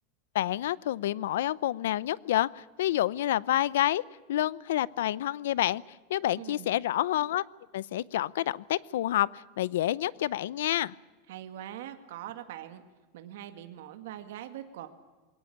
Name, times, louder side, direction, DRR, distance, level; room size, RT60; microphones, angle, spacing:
voice 1, 0.3-4.0 4.3-5.8 6.1-7.4 7.7-10.9, left 13 dB, 80° left, 21 dB, 0.6 m, -28 dB
voice 2, 6.4-6.7 11.3-12.8 13.1-14.9, right 12 dB, 65° right, 8 dB, 1.9 m, -42 dB
21.5 x 18.0 x 8.7 m, 1.2 s
supercardioid pair, 180°, 0 cm